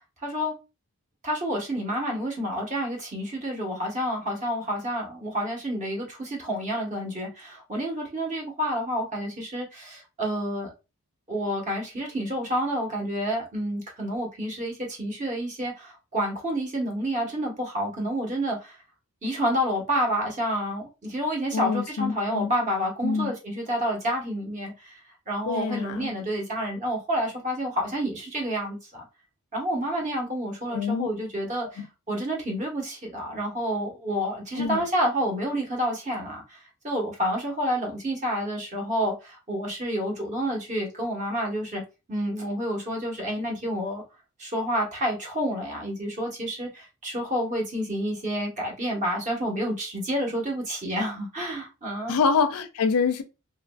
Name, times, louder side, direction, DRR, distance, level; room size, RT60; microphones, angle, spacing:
voice 1, 0.2-0.5 1.2-10.7 11.3-18.7 19.2-24.9 25.3-29.0 29.5-41.8 42.1-44.0 44.4-52.1, equal, 35° right, 1.0 m, -29 dB
voice 2, 21.5-22.5 23.0-23.3 25.5-26.1 30.7-31.1 31.6-31.8 34.6-34.8 52.1-53.2, left 5 dB, 90° left, 0.4 m, -26 dB
2.9 x 2.4 x 2.2 m
head